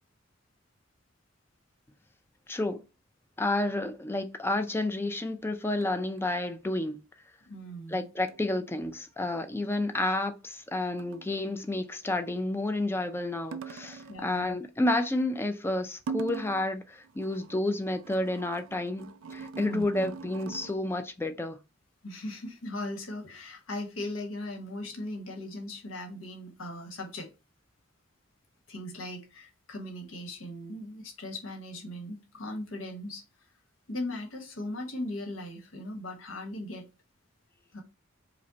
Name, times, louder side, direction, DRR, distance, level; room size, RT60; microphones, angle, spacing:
voice 1, 2.5-2.8 3.4-7.0 7.9-21.6, left 2 dB, 10° left, 0.4 m, -30 dB
sound 1, 4.6-4.7 5.8-6.2 8.3-8.8 11.0-11.5 13.5-14.3 16.0-16.7 17.0-20.8, right 5 dB, 85° right, 0.4 m, -42 dB
voice 2, 7.5-8.1 14.1-14.5 19.6-19.8 22.0-27.3 28.7-33.2 33.9-36.8 37.7-37.8, left 1 dB, 90° left, 1.3 m, -38 dB
5.1 x 2.2 x 4.0 m
head